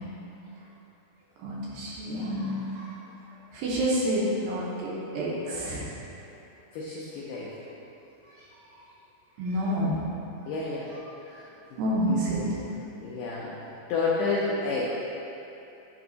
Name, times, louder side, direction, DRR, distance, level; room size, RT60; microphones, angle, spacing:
voice 1, 1.4-2.9 3.5-5.8 9.4-9.9 11.8-12.6, equal, 75° right, -6 dB, 2.3 m, -28 dB
voice 2, 6.7-7.5 10.5-10.9 11.3-11.4 12.0-12.6 13.0-13.5 13.9-14.8, left 3 dB, 90° left, -5 dB, 1.8 m, -30 dB
9.7 x 3.5 x 3.9 m, 2.9 s
omnidirectional pair, 4.6 m